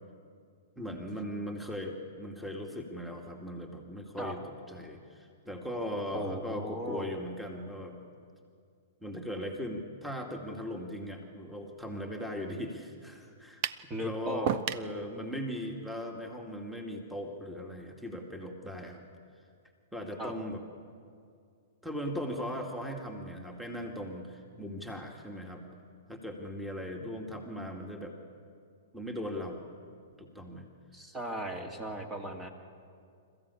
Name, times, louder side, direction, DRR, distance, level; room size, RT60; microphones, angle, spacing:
voice 1, 0.8-8.0 9.0-13.6 14.0-19.0 19.9-20.6 21.8-25.7 26.1-28.2 28.9-29.7 30.2-30.7, equal, ahead, 2 dB, 2.3 m, -39 dB
voice 2, 6.1-7.1 13.9-14.6 20.2-20.3 30.9-32.5, equal, 20° right, 3 dB, 2.3 m, -37 dB
sound 1, 13.6-13.9 14.5-14.9, right 11 dB, 45° right, 0.7 m, -31 dB
27.0 x 15.0 x 8.5 m, 2.3 s
hypercardioid pair, 120°, 0 cm